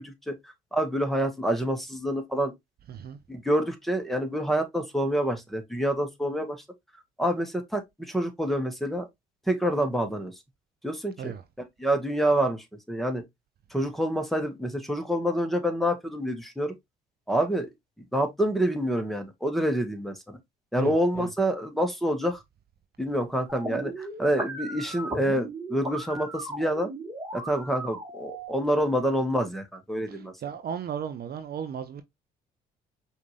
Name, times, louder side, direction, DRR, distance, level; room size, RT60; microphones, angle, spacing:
voice 1, 0.0-2.5 3.3-6.6 7.2-9.1 9.5-10.3 10.8-11.3 11.8-13.2 13.7-16.7 17.3-17.7 18.1-20.4 20.7-22.4 23.0-26.9 27.3-30.3, equal, ahead, 1.3 m, -27 dB
voice 2, 20.8-21.3 30.4-32.0, right 8 dB, 50° right, 0.6 m, -35 dB
sound 1, 23.5-28.5, right 2 dB, 15° right, 1.7 m, -37 dB
5.0 x 2.7 x 3.1 m
hypercardioid pair, 60°, 21 cm